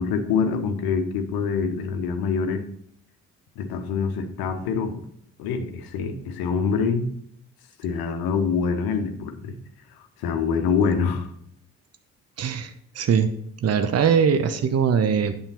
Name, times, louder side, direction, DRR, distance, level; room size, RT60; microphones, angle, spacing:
voice 1, 0.0-2.6 3.6-5.0 5.4-7.1 7.8-9.6 10.0-11.3, left 5 dB, 60° left, 8 dB, 1.1 m, -25 dB
voice 2, 12.4-13.3 13.6-15.4, right 7 dB, 35° right, 10 dB, 0.9 m, -21 dB
8.9 x 6.9 x 4.3 m, 0.69 s
figure-of-eight pair, 40°, 41 cm